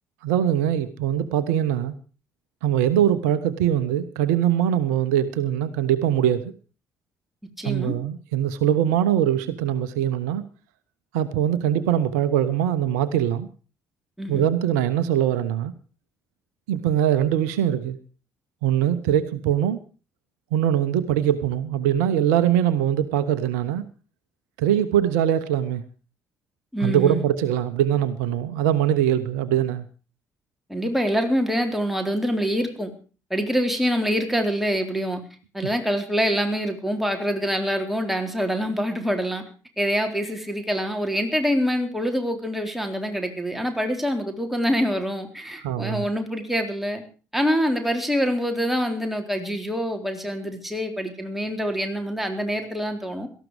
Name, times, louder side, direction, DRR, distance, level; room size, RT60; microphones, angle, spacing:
voice 1, 0.2-1.9 2.6-6.5 7.6-10.4 11.1-13.5 14.3-15.7 16.7-18.0 18.6-19.8 20.5-23.8 24.6-25.8 26.8-29.9 45.6-46.0, right 10 dB, 70° right, 15 dB, 0.9 m, -22 dB
voice 2, 7.6-7.9 14.2-14.5 26.7-27.2 30.7-32.9 33.3-35.2 35.5-39.4 39.8-47.0 47.3-53.3, equal, ahead, 4 dB, 3.9 m, -25 dB
18.0 x 13.5 x 4.9 m, 0.36 s
figure-of-eight pair, 45°, 9 cm